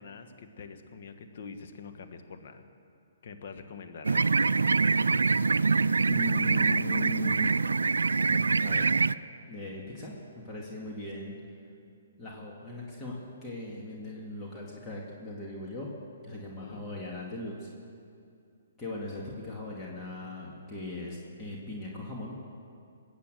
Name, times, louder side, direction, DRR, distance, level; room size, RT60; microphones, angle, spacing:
voice 1, 0.0-2.6 3.2-4.4 16.3-16.8, left 5 dB, 60° left, 8 dB, 1.4 m, -45 dB
sound 1, 4.0-9.1, right 4 dB, 90° right, 0.3 m, -25 dB
voice 2, 6.1-7.5 8.3-8.9 9.5-11.3 12.2-15.9 16.2-17.7 18.8-22.3, left 1 dB, 20° left, -4 dB, 2.3 m, -39 dB
21.0 x 8.5 x 7.8 m, 2.5 s
hypercardioid pair, 140°, 0 cm